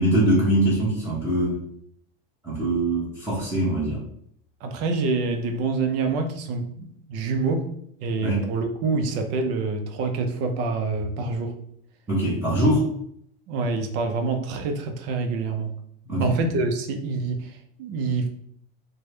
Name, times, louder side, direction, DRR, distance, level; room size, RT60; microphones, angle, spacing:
voice 1, 0.0-1.6 2.4-4.0 8.2-8.4 12.1-12.8 16.1-16.3, right 1 dB, 10° right, -9 dB, 1.0 m, -22 dB
voice 2, 4.6-7.7 8.0-11.6 13.5-15.7 16.2-18.3, right 3 dB, 55° right, 5 dB, 0.6 m, -26 dB
3.4 x 2.2 x 3.1 m, 0.69 s
supercardioid pair, 140°, 29 cm